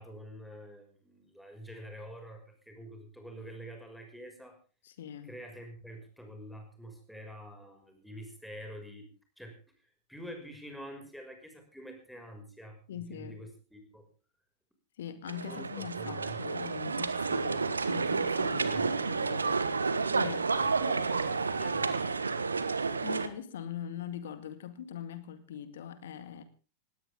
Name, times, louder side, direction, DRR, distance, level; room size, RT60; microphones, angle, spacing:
voice 1, 0.0-4.6 5.2-9.1 9.4-9.6 9.8-14.1 15.4-16.4 18.6-19.1 20.5-21.9, equal, ahead, 4 dB, 6.2 m, -47 dB
voice 2, 4.8-5.3 12.9-13.4 15.0-19.6 20.2-20.5 22.7-26.4, left 9 dB, 60° left, 12 dB, 2.0 m, -42 dB
sound 1, 15.3-23.3, right 4 dB, 75° right, 1.4 m, -30 dB
20.0 x 17.5 x 3.7 m, 0.35 s
figure-of-eight pair, 90°, 0 cm